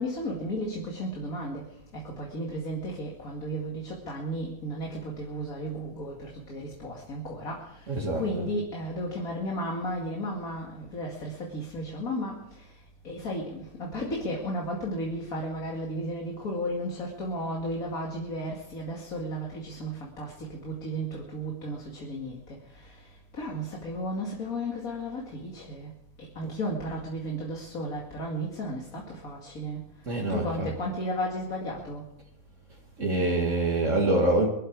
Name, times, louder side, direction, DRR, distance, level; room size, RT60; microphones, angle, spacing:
voice 1, 0.0-1.6 1.9-12.7 13.0-25.9 26.4-29.8 30.3-32.0, equal, 65° left, -2 dB, 2.7 m, -34 dB
voice 2, 7.9-8.3 30.1-30.7 33.0-34.5, right 2 dB, 55° right, -2 dB, 2.3 m, -25 dB
23.5 x 12.0 x 4.8 m, 0.84 s
omnidirectional pair, 1.6 m